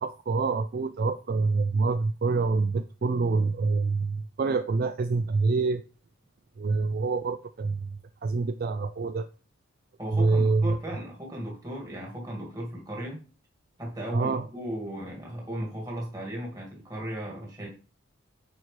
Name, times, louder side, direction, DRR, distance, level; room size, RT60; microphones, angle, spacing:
voice 1, 0.0-5.8 6.6-9.3 10.1-10.8 14.1-14.5, right 3 dB, 45° right, 0.3 m, -26 dB
voice 2, 10.0-13.2 13.8-17.7, equal, 15° right, 2.1 m, -36 dB
8.6 x 4.5 x 3.3 m
head